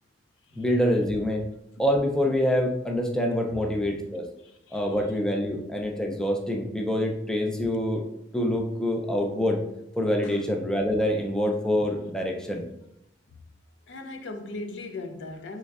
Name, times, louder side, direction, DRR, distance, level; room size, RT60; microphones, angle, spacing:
voice 1, 0.6-1.5 1.8-4.3 4.7-8.1 8.3-9.6 10.0-12.6, equal, 5° left, 0.3 m, -26 dB
voice 2, 4.4-4.9 10.2-10.4 13.9-15.6, left 2 dB, 75° left, 0.4 m, -39 dB
3.5 x 3.1 x 2.3 m
head